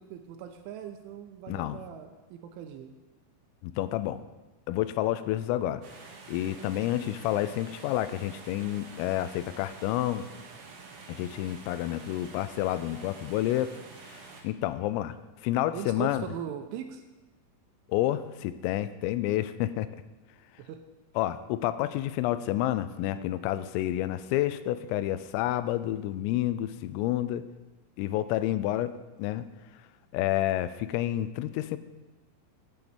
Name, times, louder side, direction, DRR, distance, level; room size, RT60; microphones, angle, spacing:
voice 1, 0.0-2.9 15.7-17.0 20.6-20.8, right 9 dB, 80° right, 7 dB, 3.0 m, -40 dB
voice 2, 1.5-1.8 3.6-4.2 4.7-5.8 6.3-10.3 11.1-13.8 14.1-15.1 15.4-16.3 17.9-19.9 21.2-27.5 28.0-28.9 29.2-29.5 30.1-31.8, left 13 dB, 85° left, 13 dB, 3.2 m, -29 dB
sound 1, 5.8-14.4, right 4 dB, 60° right, 2.8 m, -48 dB
9.4 x 8.5 x 7.8 m, 1.1 s
omnidirectional pair, 5.9 m